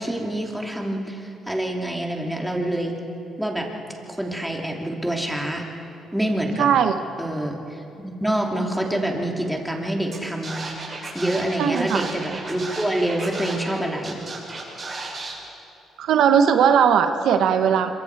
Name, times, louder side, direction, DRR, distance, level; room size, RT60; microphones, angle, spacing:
voice 1, 0.0-2.9 3.4-3.7 4.1-5.6 6.1-6.7 7.2-10.5 11.1-14.2, right 1 dB, 5° right, 0 dB, 2.9 m, -26 dB
voice 2, 6.6-6.9 11.6-12.0 16.0-17.9, right 8 dB, 80° right, 8 dB, 1.0 m, -18 dB
Scratching (performance technique), 10.1-10.2 10.4-13.7 14.0-15.3, right 3 dB, 35° right, 6.5 m, -34 dB
25.5 x 24.0 x 4.8 m, 2.8 s
cardioid pair, 90°, 0 cm